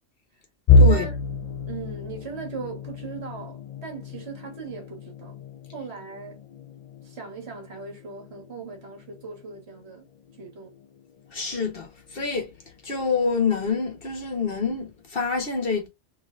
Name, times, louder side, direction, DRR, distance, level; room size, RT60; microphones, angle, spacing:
sound 1, 0.7-12.5 12.9-13.2 13.6-13.7 14.6-15.1, left 2 dB, 85° left, 0.3 m, -27 dB
voice 1, 1.7-5.4 5.7-6.4 7.0-10.1 10.4-10.7, right 5 dB, 60° right, 1.7 m, -38 dB
voice 2, 11.3-12.5 12.8-15.9, left 5 dB, 50° left, 1.4 m, -26 dB
3.7 x 3.0 x 2.4 m
omnidirectional pair, 1.2 m